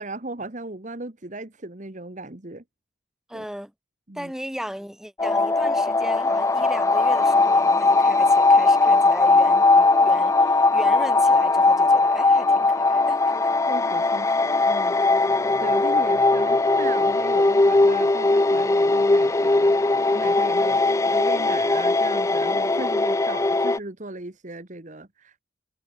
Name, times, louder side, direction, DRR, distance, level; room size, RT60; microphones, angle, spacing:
voice 1, 0.0-2.6 3.3-3.5 4.1-4.3 13.7-19.8 20.1-25.4, right 2 dB, 40° right, 1.4 m, -37 dB
voice 2, 3.3-3.7 4.1-13.2, equal, ahead, 3.4 m, -36 dB
sound 1, 5.2-23.8, left 3 dB, 15° left, 0.3 m, -19 dB
sound 2, 7.1-23.1, left 1 dB, 30° left, 4.1 m, -42 dB
head